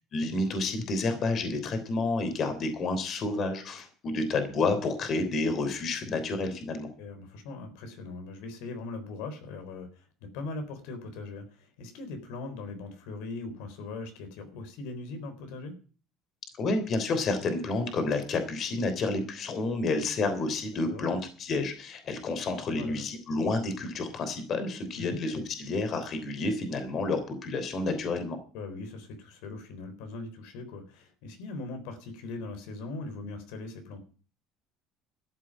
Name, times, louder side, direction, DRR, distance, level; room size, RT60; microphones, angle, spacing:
voice 1, 0.1-6.9 16.6-28.4, left 3 dB, 45° left, 9 dB, 3.4 m, -30 dB
voice 2, 7.0-15.7 20.9-21.1 22.7-23.0 25.0-25.2 28.5-34.0, left 3 dB, 85° left, 7 dB, 3.8 m, -40 dB
13.5 x 7.6 x 8.9 m, 0.39 s
cardioid pair, 125°, 0 cm